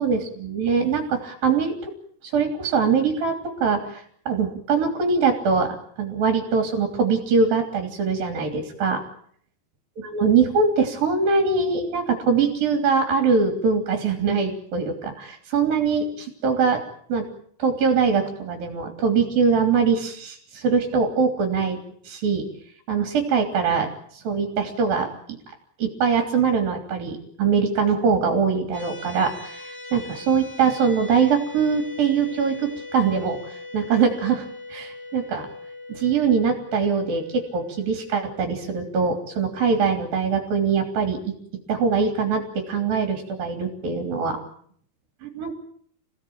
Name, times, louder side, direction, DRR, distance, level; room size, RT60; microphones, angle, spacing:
voice 1, 0.0-1.9 2.2-9.0 10.0-16.8 17.1-17.3 17.6-22.5 22.9-25.1 25.8-35.5 35.9-41.3 41.7-44.4 45.2-45.5, right 5 dB, 60° right, 4 dB, 4.6 m, -23 dB
sound 1, 28.7-39.9, left 2 dB, 70° left, 6.9 m, -40 dB
28.0 x 17.5 x 8.8 m, 0.63 s
omnidirectional pair, 4.7 m